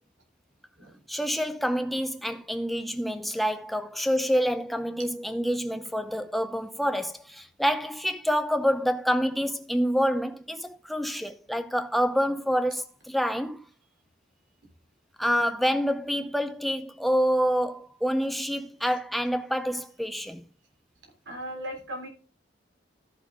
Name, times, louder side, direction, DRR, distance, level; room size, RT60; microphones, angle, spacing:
voice 1, 1.1-13.6 15.2-20.5, equal, ahead, 0.6 m, -27 dB
voice 2, 21.2-22.1, equal, 85° right, 3.4 m, -37 dB
13.5 x 5.8 x 3.7 m
head